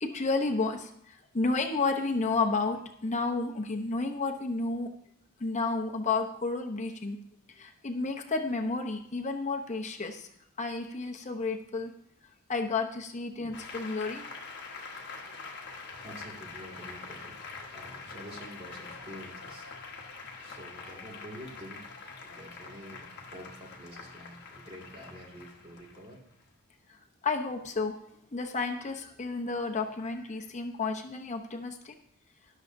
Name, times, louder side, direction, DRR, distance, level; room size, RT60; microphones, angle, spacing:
voice 1, 0.0-4.9 5.4-7.2 7.6-10.3 10.6-11.9 12.5-14.2 27.2-27.9 28.3-32.0, left 3 dB, 30° left, 3 dB, 0.9 m, -31 dB
Applause, 13.5-26.5, left 4 dB, 50° left, 1.4 m, -45 dB
voice 2, 15.0-15.5 16.0-20.1 20.4-21.8 22.2-26.2, equal, 25° right, -1 dB, 2.2 m, -48 dB
12.5 x 11.0 x 2.7 m, 0.68 s
head